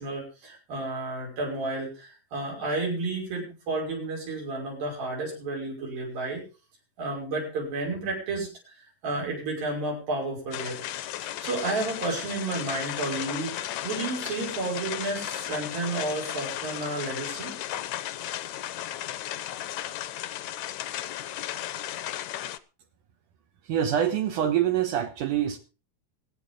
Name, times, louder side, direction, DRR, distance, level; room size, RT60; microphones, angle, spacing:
voice 1, 0.0-6.4 7.0-10.8 11.4-17.5, right 2 dB, 85° right, -3 dB, 7.6 m, -31 dB
sound 1, 10.5-22.6, left 13 dB, 70° left, 1.9 m, -35 dB
voice 2, 23.6-25.6, right 10 dB, 70° right, 5 dB, 2.5 m, -25 dB
24.5 x 8.8 x 3.7 m, 0.33 s
omnidirectional pair, 4.0 m